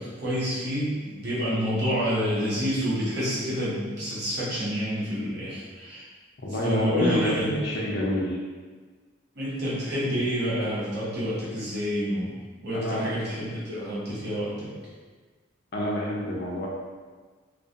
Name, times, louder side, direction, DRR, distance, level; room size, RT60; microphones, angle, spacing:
voice 1, 0.0-6.1 6.6-7.5 9.3-12.4 12.6-14.7, equal, 55° right, -9 dB, 0.9 m, -28 dB
voice 2, 6.4-8.4 12.7-13.1 15.7-16.7, left 1 dB, 50° left, -3 dB, 0.4 m, -27 dB
2.3 x 2.2 x 2.6 m, 1.4 s
head